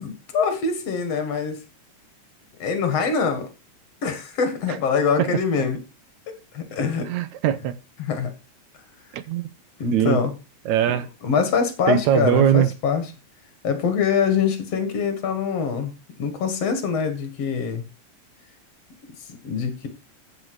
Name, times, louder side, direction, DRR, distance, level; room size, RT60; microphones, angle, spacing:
voice 1, 0.0-1.6 2.6-3.5 4.0-5.8 6.5-7.1 8.0-8.3 9.8-10.3 10.9-13.1 13.6-15.9 16.2-17.8 19.4-19.9, left 6 dB, 60° left, 2.6 m, -24 dB
voice 2, 7.1-7.7 9.1-9.5 9.9-10.2 10.7-11.1 11.9-12.7, right 11 dB, 75° right, 2.0 m, -20 dB
14.5 x 6.3 x 4.8 m
omnidirectional pair, 3.4 m